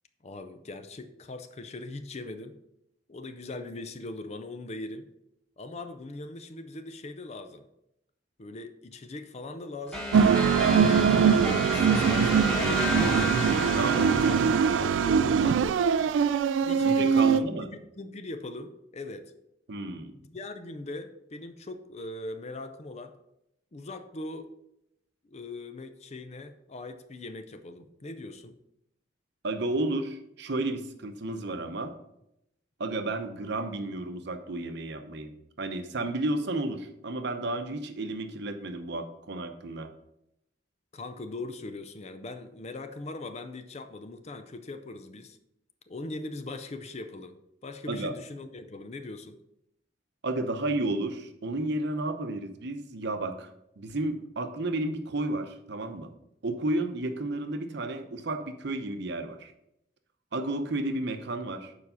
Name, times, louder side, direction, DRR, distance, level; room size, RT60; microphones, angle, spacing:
voice 1, 0.2-2.6 3.1-5.1 5.6-7.7 8.4-10.5 11.1-13.4 14.3-14.4 14.8-15.8 16.7-19.3 20.1-23.2 23.7-24.5 25.3-28.6 40.9-45.4 45.9-49.4, left 2 dB, 35° left, 9 dB, 0.5 m, -40 dB
sound 1, 9.9-15.4, left 1 dB, 5° left, 1.5 m, -32 dB
sound 2, 10.1-17.4, right 6 dB, 80° right, 0.3 m, -22 dB
voice 2, 13.7-14.4 16.8-17.7 19.7-20.1 29.4-31.9 32.8-39.9 47.9-48.1 50.2-53.5 53.8-56.1 56.4-59.5 60.3-61.7, right 2 dB, 65° right, 8 dB, 0.8 m, -32 dB
7.0 x 4.8 x 5.5 m, 0.83 s
head